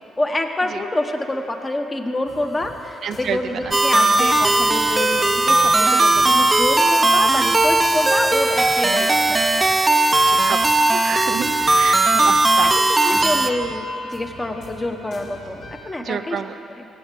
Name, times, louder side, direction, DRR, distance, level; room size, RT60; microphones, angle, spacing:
voice 1, 0.2-9.6 12.1-12.4 12.7-13.8 14.1-16.4 16.8-16.9, left 1 dB, 20° left, 4 dB, 1.2 m, -27 dB
sound 1, 2.2-15.8, left 1 dB, 85° left, 3.6 m, -41 dB
voice 2, 3.0-3.8 4.0-4.1 10.3-13.3 16.0-16.6, right 7 dB, 65° right, 9 dB, 0.5 m, -30 dB
sound 2, 3.7-13.5, right 2 dB, 20° right, 0.7 m, -17 dB
16.5 x 7.8 x 7.6 m, 2.9 s
cardioid pair, 90°, 0 cm